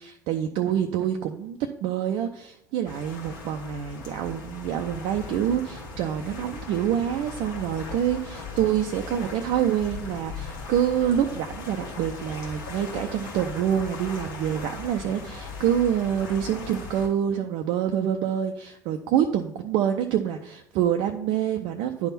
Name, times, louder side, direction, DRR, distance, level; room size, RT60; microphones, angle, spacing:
voice 1, 0.0-22.1, right 9 dB, 60° right, 5 dB, 0.5 m, -26 dB
sound 1, 2.8-17.1, left 4 dB, 75° left, 1.7 m, -38 dB
10.5 x 3.6 x 4.1 m, 0.82 s
figure-of-eight pair, 60°, 10 cm